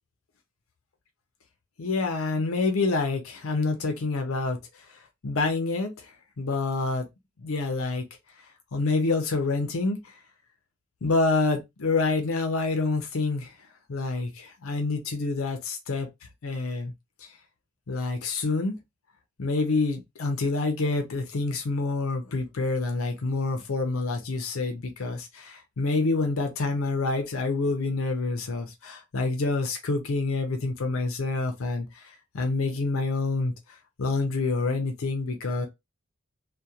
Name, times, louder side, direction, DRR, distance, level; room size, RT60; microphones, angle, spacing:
voice 1, 1.8-7.1 7.4-8.0 8.7-10.2 11.0-13.5 13.9-16.1 16.4-16.9 17.2-17.3 17.9-18.8 19.4-35.7, left 3 dB, 80° left, 0.6 m, -27 dB
2.8 x 2.2 x 2.3 m
head